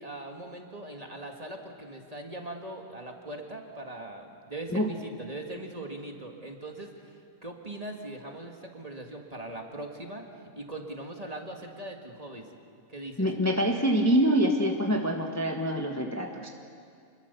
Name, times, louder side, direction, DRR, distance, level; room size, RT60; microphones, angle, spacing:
voice 1, 0.0-10.2 10.6-12.5 12.9-13.3, right 1 dB, 25° right, 2 dB, 2.0 m, -40 dB
voice 2, 13.2-16.5, equal, 10° left, 2 dB, 1.2 m, -25 dB
27.0 x 21.0 x 6.9 m, 2.4 s
omnidirectional pair, 1.5 m